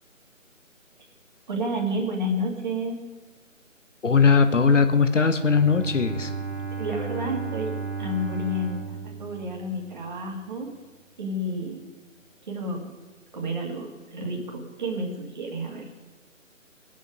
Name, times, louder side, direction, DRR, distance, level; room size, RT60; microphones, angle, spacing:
voice 1, 1.5-3.0 6.8-10.7 11.2-11.8 12.5-12.9 13.3-15.9, equal, 35° right, 0 dB, 2.1 m, -30 dB
voice 2, 4.0-6.3, left 5 dB, 65° left, 9 dB, 1.1 m, -19 dB
Bowed string instrument, 5.4-10.2, right 5 dB, 15° right, 1.2 m, -34 dB
20.5 x 7.5 x 5.2 m, 1.3 s
figure-of-eight pair, 150°, 40 cm